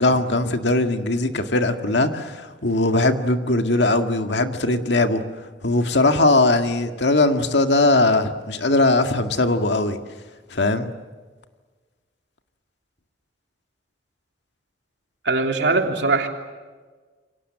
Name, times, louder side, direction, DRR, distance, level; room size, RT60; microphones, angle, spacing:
voice 1, 0.0-5.2 5.6-10.0 10.5-10.9, left 2 dB, 75° left, 2.0 m, -20 dB
voice 2, 15.2-16.3, right 3 dB, 70° right, 3.3 m, -21 dB
29.0 x 24.5 x 7.6 m
head